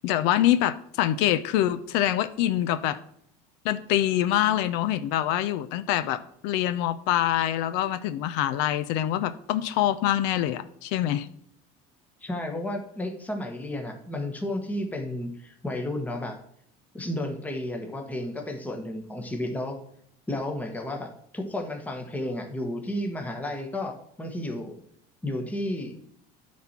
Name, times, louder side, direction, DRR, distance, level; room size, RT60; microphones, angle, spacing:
voice 1, 0.0-3.0 3.6-11.3, left 12 dB, 75° left, 13 dB, 0.6 m, -25 dB
voice 2, 12.2-16.4 16.9-19.8 20.3-21.1 21.3-24.8 25.2-26.0, left 1 dB, 10° left, 4 dB, 1.1 m, -32 dB
9.4 x 4.2 x 5.9 m, 0.69 s
cardioid pair, 130°, 18 cm